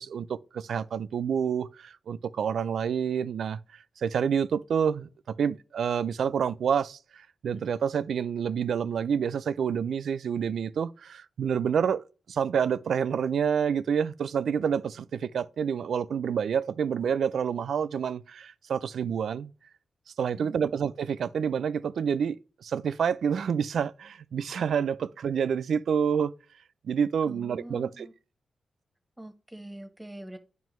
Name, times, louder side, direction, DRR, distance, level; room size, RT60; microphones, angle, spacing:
voice 1, 0.0-3.6 4.0-12.0 12.3-19.5 20.2-22.4 22.6-26.3 26.8-28.1, right 7 dB, 80° right, 0.3 m, -28 dB
voice 2, 27.2-28.1 29.2-30.4, right 1 dB, 10° right, 1.0 m, -44 dB
9.3 x 5.3 x 3.0 m
cardioid pair, 90°, 0 cm